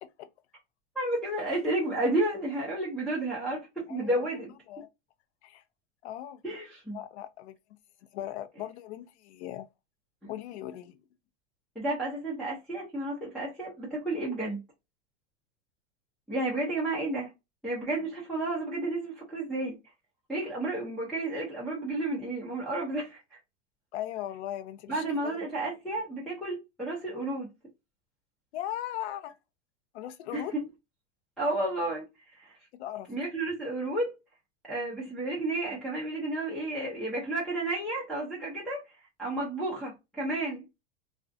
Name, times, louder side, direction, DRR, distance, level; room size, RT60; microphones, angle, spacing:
voice 1, 0.9-4.5 6.4-7.0 11.8-14.6 16.3-17.3 17.6-19.8 20.3-23.2 24.9-27.5 30.3-30.7 31.4-32.0 32.4-32.5 33.1-34.1 34.6-38.8 39.2-40.6, right 2 dB, ahead, 0.6 m, -31 dB
voice 2, 3.9-4.2 4.7-4.9 5.4-5.6 6.0-6.4 6.9-7.6 8.1-9.7 10.2-11.0 23.9-25.4 28.5-29.3 29.9-30.5 32.8-33.1, left 12 dB, 65° left, 0.6 m, -38 dB
2.4 x 2.2 x 2.5 m
hypercardioid pair, 130°, 36 cm